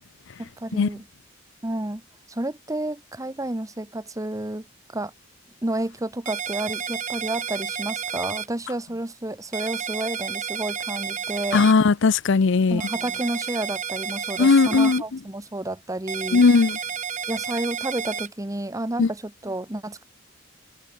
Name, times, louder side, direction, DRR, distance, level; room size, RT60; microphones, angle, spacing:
voice 1, 0.4-1.1 1.6-2.0 2.3-4.7 4.9-5.1 5.6-11.6 12.7-16.4 17.3-20.0, right 1 dB, 15° right, 1.1 m, -30 dB
sound 1, 6.3-8.5 9.5-11.7 12.8-15.0 16.1-18.3, right 7 dB, 40° right, 1.7 m, -31 dB
voice 2, 11.5-12.8 14.4-15.0 16.3-16.8 19.0-19.1, left 4 dB, 65° left, 0.6 m, -17 dB
head